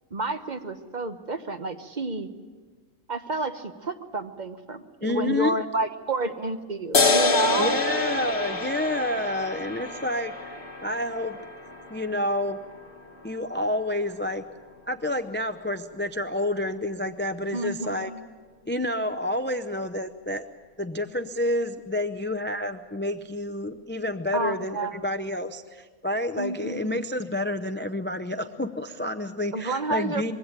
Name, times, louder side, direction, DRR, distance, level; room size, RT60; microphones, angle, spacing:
voice 1, 0.1-2.3 3.1-7.8 17.5-18.2 24.3-25.0 26.4-27.0 29.5-30.3, right 2 dB, 35° right, 8 dB, 1.0 m, -30 dB
voice 2, 5.0-5.5 7.6-10.5 10.8-11.4 11.9-12.6 13.2-14.4 14.9-18.1 18.7-20.5 20.8-30.3, left 1 dB, 15° left, 10 dB, 0.4 m, -29 dB
sound 1, 6.9-13.9, left 3 dB, 40° left, 1.8 m, -27 dB
22.0 x 16.0 x 8.9 m, 1.4 s
omnidirectional pair, 1.4 m